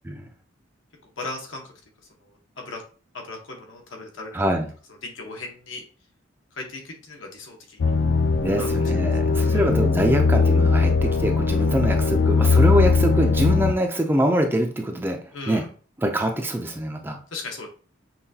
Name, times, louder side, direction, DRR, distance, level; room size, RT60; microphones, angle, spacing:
voice 1, 1.2-1.7 2.2-2.8 3.1-4.4 5.0-5.8 6.5-7.9 8.6-8.7 9.5-9.7 15.3-15.7 17.3-17.7, left 3 dB, 75° left, 2 dB, 1.0 m, -37 dB
voice 2, 4.3-4.7 8.4-15.2 15.5-15.6 16.0-17.2, right 1 dB, 10° right, 4 dB, 0.4 m, -24 dB
sound 1, 7.8-13.7, left 4 dB, 60° left, 0.3 m, -20 dB
5.6 x 2.3 x 2.7 m, 0.40 s
head